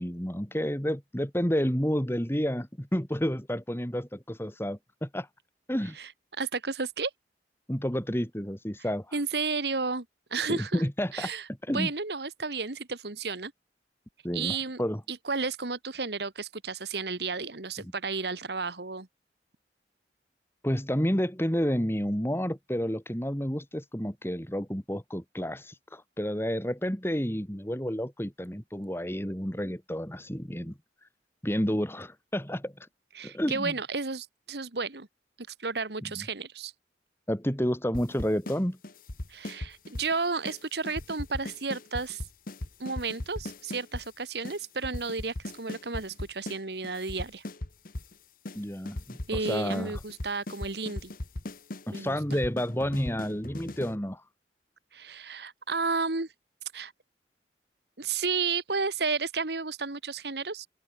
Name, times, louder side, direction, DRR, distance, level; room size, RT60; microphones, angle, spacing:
voice 1, 0.0-5.3 5.7-6.0 7.7-9.2 10.5-11.3 11.6-11.9 14.2-15.0 17.8-17.9 20.6-30.7 31.4-32.9 33.2-33.7 36.2-36.3 37.3-38.8 48.5-50.0 51.9-54.2, equal, 15° left, 3.4 m, -30 dB
voice 2, 5.9-7.1 9.1-10.0 10.3-10.8 11.1-13.5 14.3-14.8 15.1-19.1 33.1-35.1 35.4-36.7 39.3-42.2 42.8-47.4 49.3-51.1 51.9-52.4 54.9-56.3 56.7-56.9 58.0-60.7, right 4 dB, 65° right, 1.7 m, -32 dB
sound 1, 37.9-38.6 38.8-40.1 40.4-40.6 40.9-44.1 44.4-44.6 44.8-46.6 46.8-48.1 48.4-48.6 48.9-53.9, left 1 dB, 50° left, 1.4 m, -38 dB
open air
head